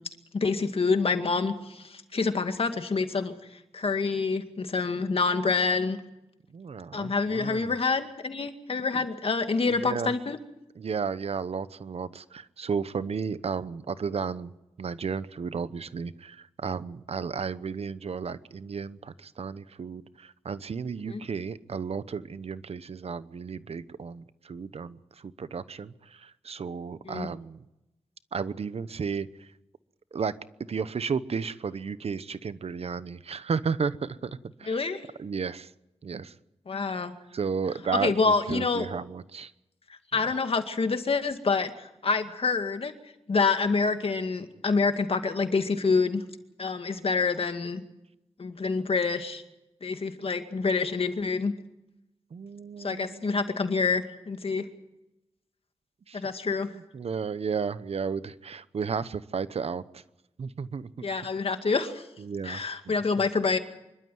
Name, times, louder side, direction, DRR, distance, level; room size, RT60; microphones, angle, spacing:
voice 1, 0.3-6.0 6.9-10.4 21.1-21.2 27.1-27.3 34.7-35.1 36.7-37.1 38.0-38.9 40.1-42.9 43.3-46.2 46.6-47.8 48.4-49.4 49.8-51.5 52.8-54.7 56.1-56.7 61.0-62.1 62.4-63.6, left 4 dB, 60° left, 7 dB, 2.1 m, -27 dB
voice 2, 6.5-7.7 8.9-9.1 9.6-10.1 10.7-14.5 14.8-27.6 28.3-29.5 30.1-30.3 30.7-34.8 35.2-35.7 36.0-36.3 36.9-37.0 37.3-39.5 52.3-53.3 56.1-56.2 56.7-60.0 60.4-61.1 62.2-62.9, right 5 dB, 70° right, 15 dB, 0.9 m, -33 dB
25.5 x 12.5 x 9.4 m, 0.92 s
cardioid pair, 50°, 11 cm